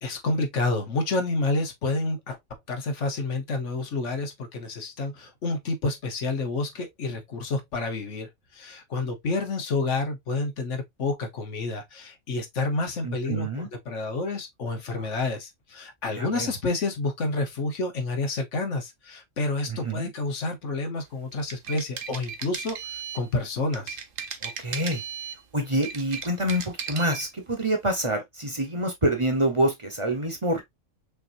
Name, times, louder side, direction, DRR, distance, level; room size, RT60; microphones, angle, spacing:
voice 1, 0.0-2.4 2.7-24.0, left 3 dB, 70° left, 1.4 m, -29 dB
voice 2, 13.0-13.7 14.9-15.1 16.1-16.5 19.7-20.1 24.4-25.0 25.5-30.6, right 1 dB, 25° right, 1.1 m, -27 dB
sound 1, 21.3-23.3 23.7-25.4 25.7-27.3, right 6 dB, 50° right, 0.9 m, -36 dB
5.8 x 2.8 x 2.5 m
omnidirectional pair, 1.3 m